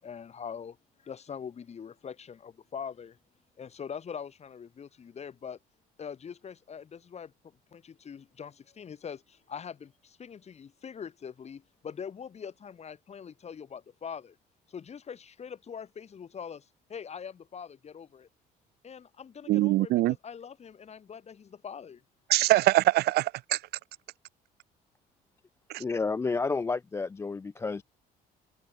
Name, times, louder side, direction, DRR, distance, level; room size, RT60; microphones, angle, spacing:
voice 1, 0.0-3.2 3.6-5.6 6.0-14.4 14.7-18.3 18.8-22.0, left 7 dB, 40° left, 7.3 m, -43 dB
voice 2, 19.5-20.1 22.3-23.6 25.7-25.8, right 17 dB, 75° right, 0.7 m, -23 dB
voice 3, 25.7-27.8, left 4 dB, 15° left, 0.3 m, -30 dB
cardioid pair, 110°, 17 cm